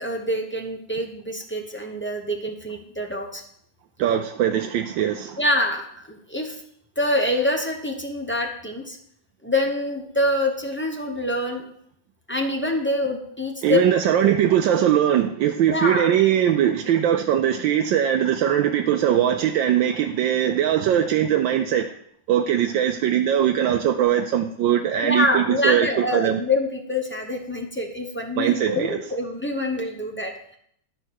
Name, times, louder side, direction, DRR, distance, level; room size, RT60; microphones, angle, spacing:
voice 1, 0.0-3.4 5.4-6.6 7.0-9.0 9.4-11.6 12.3-13.8 14.2-14.3 15.7-16.1 25.0-30.6, left 1 dB, 10° left, 2 dB, 0.6 m, -25 dB
voice 2, 4.0-5.4 13.6-21.9 22.3-26.4 28.4-29.0, right 10 dB, 75° right, 5 dB, 1.3 m, -21 dB
12.0 x 4.4 x 6.3 m, 0.68 s
omnidirectional pair, 2.1 m